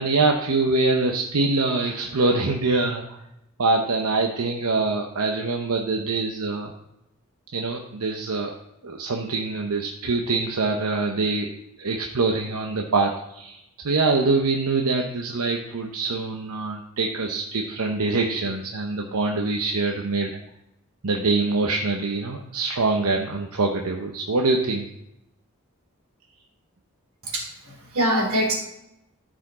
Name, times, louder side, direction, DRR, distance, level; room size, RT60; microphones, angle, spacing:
voice 1, 0.0-3.2 3.6-6.7 7.5-8.6 8.8-11.5 11.8-20.4 21.0-24.9, right 3 dB, 90° right, 2 dB, 0.8 m, -24 dB
voice 2, 27.2-28.5, right 1 dB, 65° right, -1 dB, 3.0 m, -24 dB
13.0 x 5.1 x 3.7 m, 0.83 s
head